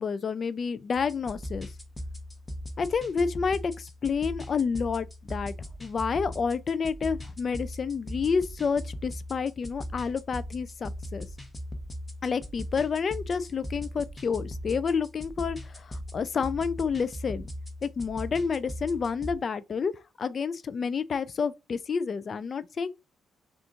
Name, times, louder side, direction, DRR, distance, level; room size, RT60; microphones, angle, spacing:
voice 1, 0.0-1.7 2.8-5.5 5.8-11.3 12.2-17.5 17.8-19.9 20.2-22.9, left 5 dB, 45° left, 0.3 m, -29 dB
sound 1, 0.9-19.3, equal, 15° left, 0.9 m, -39 dB
2.7 x 2.4 x 3.7 m
cardioid pair, 90°, 0 cm